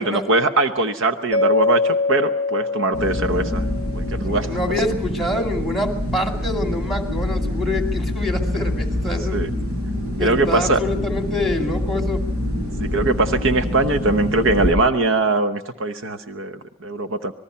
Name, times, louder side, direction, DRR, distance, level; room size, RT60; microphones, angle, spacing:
voice 1, 0.0-4.5 9.3-9.5 10.2-10.8 12.8-17.3, right 2 dB, 60° right, 9 dB, 0.9 m, -21 dB
Mallet percussion, 1.3-4.3, left 3 dB, 20° left, 1.0 m, -23 dB
sound 1, 2.9-14.7, left 1 dB, 85° right, 7.1 m, -25 dB
voice 2, 4.2-9.4 10.2-12.2, left 2 dB, ahead, 4 dB, 2.3 m, -26 dB
26.5 x 19.0 x 5.7 m, 0.72 s
head